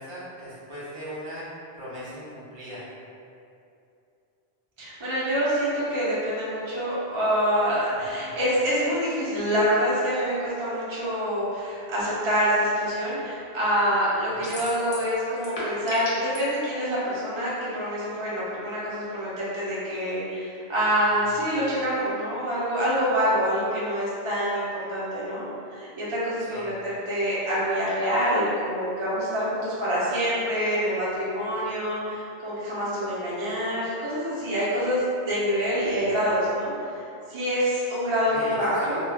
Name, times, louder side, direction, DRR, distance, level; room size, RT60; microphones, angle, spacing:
voice 1, 0.0-1.5 1.7-2.8 7.9-8.4 14.4-14.5 26.5-26.7 36.0-36.1 38.2-39.0, equal, 60° right, -9 dB, 1.0 m, -39 dB
voice 2, 4.8-39.0, equal, 35° right, -9 dB, 0.6 m, -26 dB
sound 1, 14.4-15.1 15.4-16.4, left 1 dB, 40° left, 0.6 m, -34 dB
2.3 x 2.2 x 3.4 m, 2.6 s
omnidirectional pair, 1.1 m